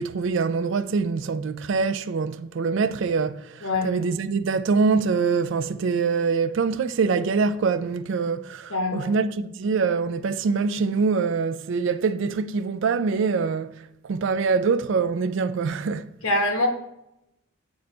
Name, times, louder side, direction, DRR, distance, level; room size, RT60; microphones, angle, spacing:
voice 1, 0.0-16.1, right 5 dB, 55° right, 0.3 m, -24 dB
voice 2, 8.7-9.1 16.2-16.7, left 2 dB, 75° left, 1.2 m, -24 dB
8.0 x 3.9 x 3.3 m
head